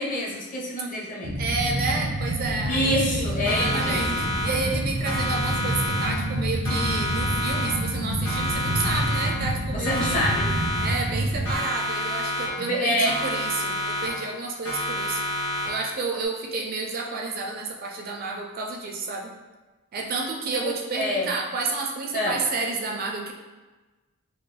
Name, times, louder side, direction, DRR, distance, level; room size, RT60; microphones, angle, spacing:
voice 1, 0.0-1.3 2.7-4.2 9.7-10.5 12.6-13.2 20.5-21.3 22.1-22.4, left 1 dB, 35° left, -3 dB, 0.7 m, -26 dB
sound 1, 1.2-11.6, right 1 dB, 80° right, 0.6 m, -28 dB
voice 2, 1.4-10.2 10.8-15.2 15.7-19.3 19.9-23.3, right 3 dB, 40° right, 0 dB, 0.4 m, -30 dB
Siren, 3.5-4.8 5.1-6.4 6.7-8.0 8.3-9.6 9.9-11.2 11.5-12.8 13.1-14.4 14.7-16.0, left 1 dB, 70° left, 1.2 m, -29 dB
4.6 x 2.0 x 3.2 m, 1.2 s
head